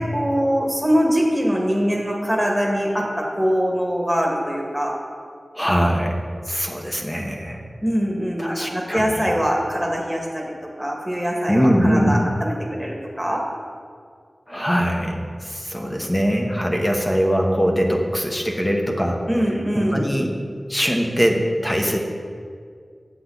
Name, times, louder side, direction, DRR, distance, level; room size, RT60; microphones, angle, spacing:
voice 1, 0.1-4.9 7.8-10.4 10.8-13.4 19.3-20.1, equal, ahead, -1 dB, 1.8 m, -23 dB
voice 2, 5.5-6.2 6.5-7.6 8.4-9.1 11.5-12.2 14.5-19.2 19.8-20.3 20.7-22.0, equal, 15° left, 1 dB, 1.0 m, -21 dB
8.1 x 7.8 x 3.9 m, 2.1 s
wide cardioid pair, 65°, 0 cm